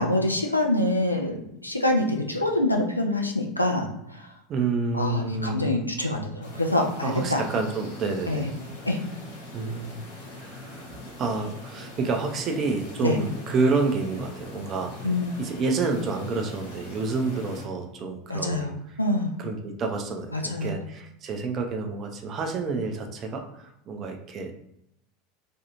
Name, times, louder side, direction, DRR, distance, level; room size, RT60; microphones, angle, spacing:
voice 1, 0.0-3.9 4.9-7.4 8.3-8.5 8.9-9.0 13.0-13.2 15.0-15.3 18.3-18.7 19.0-19.3 20.3-20.8, left 1 dB, 85° left, 1 dB, 0.3 m, -25 dB
voice 2, 4.5-5.7 7.0-8.5 9.5-10.0 10.4-15.1 15.4-19.0 19.4-24.5, right 4 dB, 35° right, 3 dB, 0.5 m, -29 dB
sound 1, 6.4-17.7, left 1 dB, 65° left, 0.9 m, -42 dB
2.5 x 2.3 x 2.9 m, 0.80 s
figure-of-eight pair, 80°, 0 cm